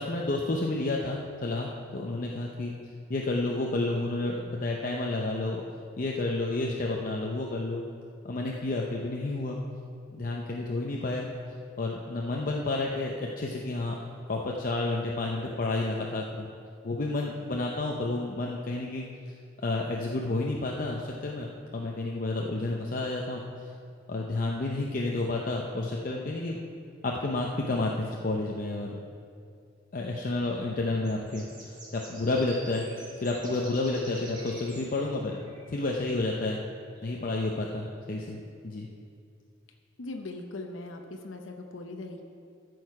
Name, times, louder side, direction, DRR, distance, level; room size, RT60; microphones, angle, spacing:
voice 1, 0.0-2.7 3.1-5.6 6.0-7.8 8.2-9.6 10.1-11.3 11.8-14.0 14.3-16.5 16.8-19.0 19.6-21.5 21.7-23.4 24.1-26.6 27.0-29.0 29.9-32.8 33.2-35.4 35.7-36.6 37.0-38.9, left 2 dB, 45° left, -1 dB, 0.7 m, -30 dB
Dawn Chorus - Birdsong - London - UK, 30.0-30.7 31.0-35.9 37.0-37.9, right 2 dB, 25° right, 1.9 m, -49 dB
voice 2, 40.0-42.2, left 2 dB, 90° left, 3 dB, 0.8 m, -40 dB
13.5 x 6.3 x 4.8 m, 2.3 s
head